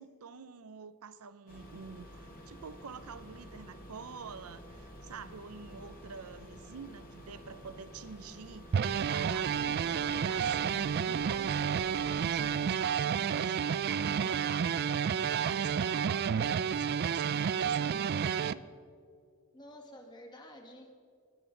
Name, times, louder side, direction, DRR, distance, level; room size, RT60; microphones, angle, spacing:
voice 1, 0.0-18.6, right 5 dB, 85° right, 14 dB, 0.6 m, -47 dB
sound 1, 1.5-12.7, equal, 40° left, 1.8 m, -50 dB
sound 2, 8.7-18.5, right 7 dB, 45° right, 0.3 m, -30 dB
voice 2, 9.6-10.8 15.7-16.1 19.5-20.9, left 1 dB, 20° left, 2 dB, 1.7 m, -52 dB
19.5 x 9.9 x 3.9 m, 2.2 s
head